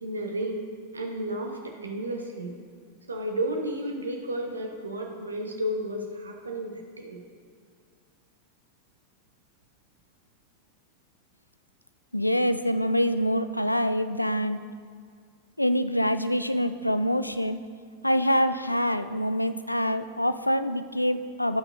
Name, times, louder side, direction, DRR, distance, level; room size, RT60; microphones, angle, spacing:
voice 1, 0.0-0.6 0.9-2.5 3.1-7.2, right 1 dB, 75° right, 2 dB, 1.2 m, -32 dB
voice 2, 12.1-14.6 15.6-17.6 18.0-21.6, equal, 85° left, 11 dB, 0.3 m, -25 dB
15.5 x 5.9 x 2.7 m, 2.1 s
figure-of-eight pair, 90°, 0 cm